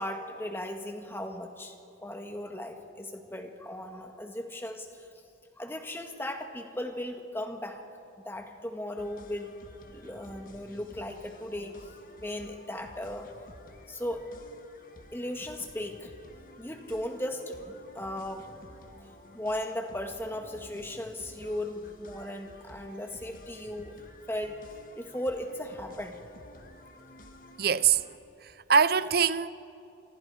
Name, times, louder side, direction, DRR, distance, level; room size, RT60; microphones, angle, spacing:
voice 1, 0.0-1.8 2.0-5.1 5.6-7.8 8.2-9.5 9.9-11.7 12.2-13.3 13.9-14.3 15.1-16.1 16.6-18.5 19.3-24.0 24.3-24.6 25.0-26.2, left 1 dB, 10° left, 1.8 m, -37 dB
sound 1, 9.0-28.2, left 1 dB, 45° left, 1.5 m, -52 dB
voice 2, 27.6-28.0 28.4-29.5, right 6 dB, 55° right, 0.7 m, -23 dB
30.0 x 26.0 x 4.9 m
head